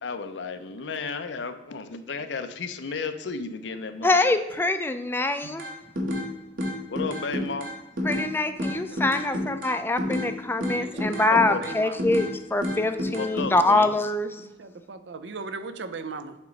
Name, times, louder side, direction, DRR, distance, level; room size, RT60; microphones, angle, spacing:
voice 1, 0.0-4.4 6.9-7.7 11.3-11.6 13.2-13.9, left 4 dB, 75° left, 9 dB, 0.6 m, -33 dB
voice 2, 4.0-5.7 8.0-14.3, left 2 dB, 10° left, 9 dB, 0.4 m, -24 dB
sound 1, 5.6-6.3 6.6-8.3 8.6-10.3 10.6-12.3 12.6-13.5, left 1 dB, 50° right, 1.2 m, -29 dB
voice 3, 8.5-9.4 10.8-12.1 14.4-16.4, right 4 dB, 75° right, 10 dB, 0.5 m, -39 dB
7.3 x 3.0 x 5.2 m, 1.0 s
head